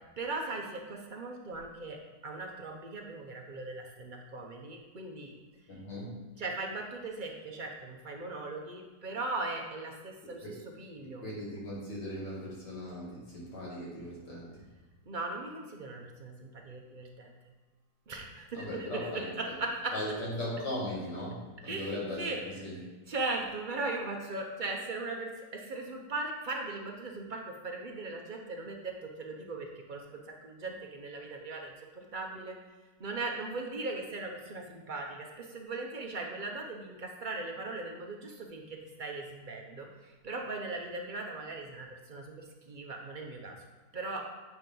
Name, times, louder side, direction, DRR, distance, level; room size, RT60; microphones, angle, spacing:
voice 1, 0.2-2.0 2.2-5.3 6.4-11.2 15.1-17.3 18.1-19.3 19.6-19.9 21.6-22.6 23.1-32.6 33.0-43.6 43.9-44.2, right 3 dB, 50° right, 1 dB, 0.6 m, -39 dB
voice 2, 5.7-6.2 10.4-10.5 11.0-14.6 18.5-19.6 19.9-22.8, left 1 dB, 75° left, -4 dB, 2.7 m, -38 dB
8.2 x 3.4 x 5.3 m, 1.3 s
omnidirectional pair, 1.9 m